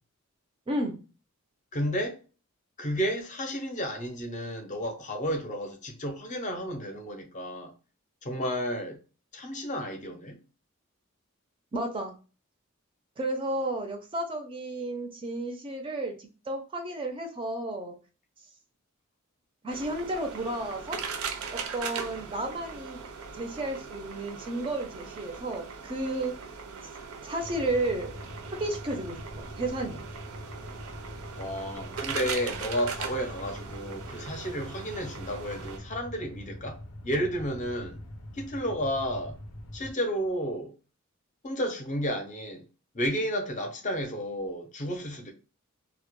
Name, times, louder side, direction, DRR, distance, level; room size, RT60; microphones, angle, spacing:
voice 1, 0.7-1.0 11.7-12.2 13.2-18.0 19.6-21.0 21.5-23.0 23.3-26.3 27.2-28.1 28.6-29.2 29.6-30.0, right 1 dB, 25° right, 0.4 m, -32 dB
voice 2, 1.7-2.2 2.8-7.7 8.2-9.0 9.3-10.4 31.4-38.0 38.3-39.4 39.7-40.7 41.4-42.6 42.9-45.3, equal, 35° left, 0.5 m, -32 dB
sound 1, 19.7-35.8, right 6 dB, 85° right, 0.5 m, -40 dB
sound 2, 27.4-39.9, left 1 dB, 85° left, 0.5 m, -44 dB
2.0 x 2.0 x 2.9 m
head